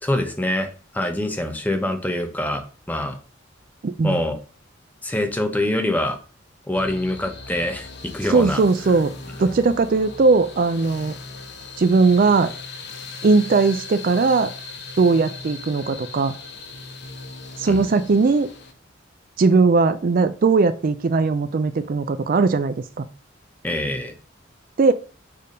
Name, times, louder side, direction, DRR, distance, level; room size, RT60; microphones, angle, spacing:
voice 1, 0.0-3.2 4.0-4.4 5.0-6.2 6.7-7.9 8.1-8.6 17.7-17.8 23.6-24.1, left 1 dB, 10° left, 6 dB, 0.8 m, -25 dB
voice 2, 3.8-4.2 8.3-9.1 9.4-11.1 11.8-12.5 13.2-14.5 15.0-16.3 17.6-18.5 19.4-23.1 24.8-24.9, right 4 dB, 45° right, 12 dB, 0.4 m, -19 dB
sound 1, 6.7-18.7, left 3 dB, 55° left, 0.9 m, -38 dB
6.6 x 3.4 x 5.1 m, 0.38 s
head